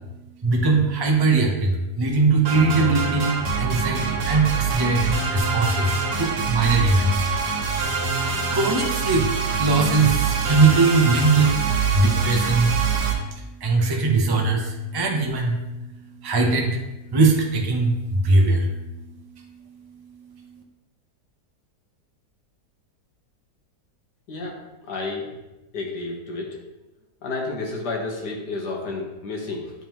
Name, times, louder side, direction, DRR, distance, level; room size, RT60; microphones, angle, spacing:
voice 1, 0.4-20.6, right 3 dB, 30° right, 1 dB, 0.4 m, -22 dB
sound 1, 2.4-13.1, right 5 dB, 85° right, 1.5 m, -25 dB
voice 2, 24.8-25.3 25.7-26.6 27.2-29.7, left 3 dB, 80° left, 0 dB, 1.7 m, -30 dB
9.0 x 3.5 x 3.0 m, 1.0 s
omnidirectional pair, 1.7 m